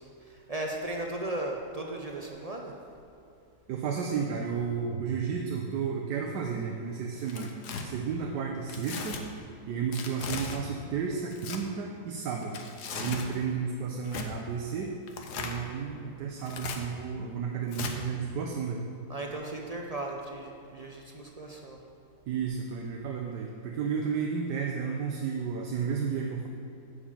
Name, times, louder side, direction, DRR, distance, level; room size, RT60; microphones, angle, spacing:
voice 1, 0.0-2.7 19.1-21.8, right 1 dB, 55° right, 0 dB, 0.4 m, -36 dB
voice 2, 3.7-7.5 7.8-9.2 9.7-12.6 12.9-14.9 15.4-18.8 22.3-26.5, right 6 dB, 90° right, 1 dB, 1.4 m, -32 dB
Tearing, 7.2-7.8 8.7-9.2 9.9-10.6 11.3-11.6 12.4-13.3 14.1-14.3 15.1-15.6 16.4-16.8 17.7-17.9, left 5 dB, 75° left, 1.4 m, -37 dB
10.0 x 5.0 x 7.3 m, 2.6 s
omnidirectional pair, 1.7 m